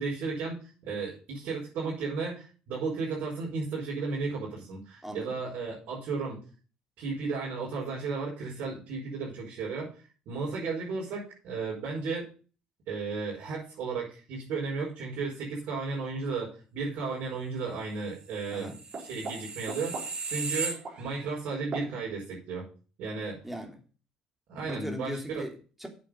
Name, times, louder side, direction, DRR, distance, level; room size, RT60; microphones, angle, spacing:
voice 1, 0.0-6.4 7.0-9.9 10.2-12.2 12.9-22.6 23.0-23.4 24.5-25.4, right 4 dB, 70° right, 4.9 m, -34 dB
sound 1, 18.4-21.3 21.7-21.9, right 4 dB, 45° right, 4.7 m, -36 dB
voice 2, 23.4-23.7 24.6-25.9, equal, 5° right, 3.1 m, -38 dB
8.4 x 7.8 x 5.2 m
hypercardioid pair, 65°, 3 cm